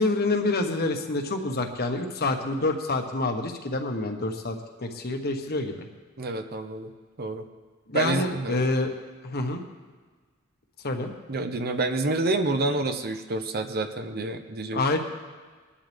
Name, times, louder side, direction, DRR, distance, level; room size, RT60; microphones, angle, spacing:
voice 1, 0.0-5.9 7.9-8.9 9.2-9.6 10.8-11.1 14.7-15.0, left 2 dB, 50° left, 4 dB, 1.4 m, -27 dB
voice 2, 6.2-6.9 7.2-7.4 7.9-8.6 11.3-14.8, right 2 dB, 50° right, 6 dB, 1.0 m, -28 dB
22.0 x 11.5 x 3.6 m, 1.4 s
head